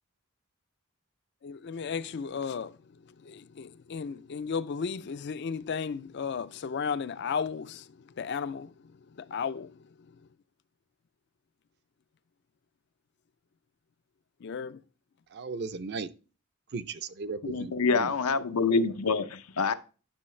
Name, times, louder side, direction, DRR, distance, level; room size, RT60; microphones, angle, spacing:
voice 1, 1.4-2.8 3.0-9.8 14.4-14.8, left 6 dB, 50° left, 0.4 m, -35 dB
voice 2, 15.3-16.1 16.7-18.1, right 4 dB, 50° right, 0.5 m, -36 dB
voice 3, 17.4-19.7, left 4 dB, 90° left, 0.7 m, -26 dB
9.8 x 6.4 x 3.2 m
head